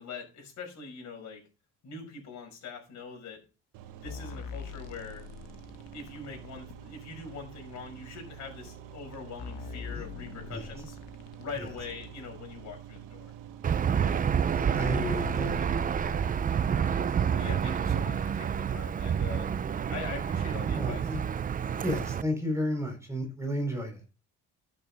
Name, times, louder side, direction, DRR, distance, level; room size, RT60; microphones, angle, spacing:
voice 1, 0.0-1.4 1.8-3.4 4.0-5.3 5.9-11.0 11.4-13.3 16.9-19.5 19.9-21.0, left 5 dB, 60° left, 1 dB, 5.7 m, -43 dB
sound 1, 3.7-16.7, right 10 dB, 90° right, 1.4 m, -48 dB
sound 2, 4.1-6.8 7.8-7.9 8.7-8.8 9.1-12.1 13.0-13.1 14.0-14.1 14.4-14.5 14.7-17.5 18.5-18.6, left 6 dB, 85° left, 1.2 m, -44 dB
Aircraft / Engine, 13.6-22.2, right 7 dB, 25° right, 0.5 m, -28 dB
voice 2, 14.1-16.1 20.7-21.2 21.8-24.0, equal, 10° right, 4 dB, 4.0 m, -33 dB
11.5 x 6.7 x 3.6 m, 0.31 s
cardioid pair, 115°, 32 cm